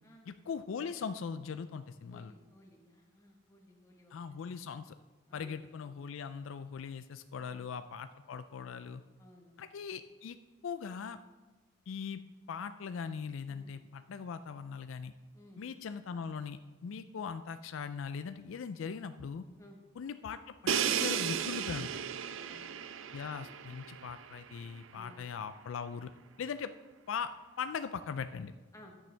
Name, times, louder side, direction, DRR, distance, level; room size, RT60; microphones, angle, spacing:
voice 1, 0.3-2.3 4.1-4.9 5.3-9.0 9.6-10.4 10.6-11.2 11.9-12.2 12.5-15.1 15.6-19.5 20.0-20.5 21.0-21.9 23.1-26.1 26.4-26.7 27.1-27.3 27.6-28.5, left 6 dB, 70° left, 11 dB, 0.4 m, -40 dB
voice 2, 2.1-4.1 5.3-5.6 9.2-9.6 13.5-13.8 15.3-15.6 19.6-19.8 22.3-22.7 24.9-25.3 28.7-29.0, left 1 dB, 15° left, 1 dB, 1.3 m, -58 dB
Crash cymbal, 20.7-24.5, right 8 dB, 70° right, 0.4 m, -34 dB
10.5 x 8.6 x 3.4 m, 1.3 s
head